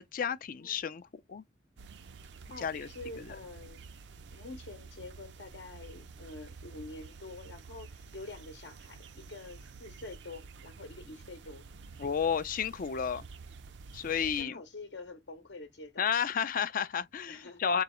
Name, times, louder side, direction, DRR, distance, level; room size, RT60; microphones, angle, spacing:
voice 1, 0.0-1.4 2.6-2.9 3.2-3.4 12.0-13.3 13.9-14.6 16.0-17.8, left 7 dB, 50° left, 0.4 m, -32 dB
sound 1, 1.8-14.4, right 4 dB, 75° right, 0.5 m, -50 dB
voice 2, 2.5-3.8 4.3-11.6 14.2-16.1 17.3-17.7, left 2 dB, 75° left, 0.8 m, -47 dB
3.9 x 2.3 x 4.2 m
head